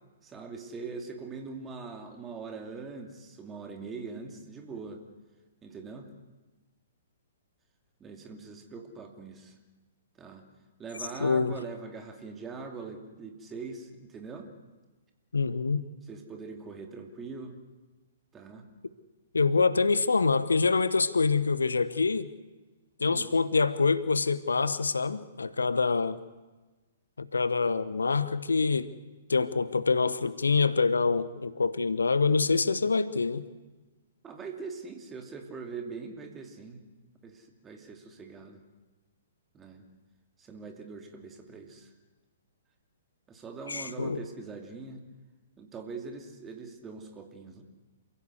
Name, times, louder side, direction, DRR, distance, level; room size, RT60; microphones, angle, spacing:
voice 1, 0.2-5.0 5.6-6.1 8.0-9.5 10.2-10.4 10.8-14.5 16.1-17.6 18.3-18.7 23.0-23.3 34.2-36.8 37.2-38.6 39.5-39.8 40.4-41.9 43.3-45.1 45.6-47.6, right 4 dB, 15° right, 4 dB, 2.7 m, -42 dB
voice 2, 11.2-11.6 15.3-15.9 19.3-22.3 23.0-26.2 27.2-28.9 29.3-33.4 43.7-44.2, left 4 dB, 75° left, 15 dB, 1.0 m, -26 dB
28.0 x 16.0 x 8.1 m, 1.2 s
figure-of-eight pair, 120°, 0 cm